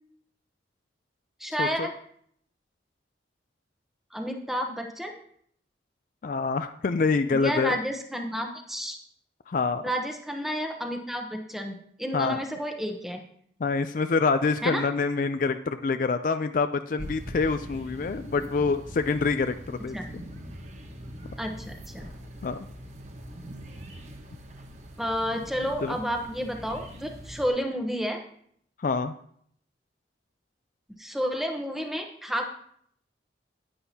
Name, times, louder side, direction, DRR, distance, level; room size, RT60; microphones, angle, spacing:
voice 1, 1.4-1.9 4.1-5.2 7.3-9.0 9.8-13.2 14.6-14.9 19.9-20.0 21.4-22.1 25.0-28.2 31.0-32.5, equal, ahead, 3 dB, 0.9 m, -31 dB
voice 2, 6.2-7.8 9.5-9.8 12.1-12.4 13.6-20.2 22.4-22.6 25.8-26.0 28.8-29.1, left 4 dB, 45° left, 10 dB, 0.4 m, -26 dB
sound 1, 17.0-27.5, equal, 40° right, 1.0 m, -42 dB
10.0 x 9.6 x 2.8 m, 0.65 s
head